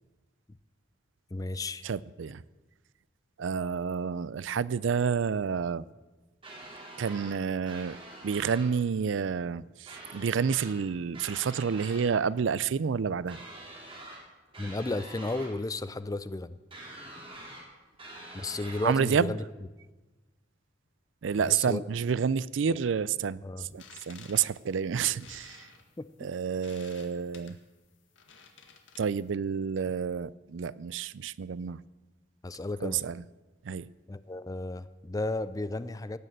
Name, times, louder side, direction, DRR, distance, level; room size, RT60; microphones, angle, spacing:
voice 1, 1.3-1.8 14.6-16.6 18.3-19.4 21.4-21.8 22.7-22.8 23.4-23.7 26.0-26.3 32.4-33.0 34.1-36.2, left 2 dB, 20° left, 0.4 m, -34 dB
voice 2, 1.8-2.4 3.4-5.8 7.0-8.0 8.2-13.4 18.8-19.3 21.2-25.7 26.2-27.6 29.0-31.8 32.8-33.2 33.6-33.9, right 6 dB, 70° right, 0.4 m, -29 dB
sound 1, 6.4-7.4 7.7-8.7 9.9-10.8 11.1-12.1 13.3-14.2 14.5-15.5 16.7-17.6 18.0-19.0, right 2 dB, 30° right, 3.5 m, -45 dB
sound 2, 23.6-29.3, left 6 dB, 75° left, 1.8 m, -54 dB
18.0 x 6.6 x 8.9 m
head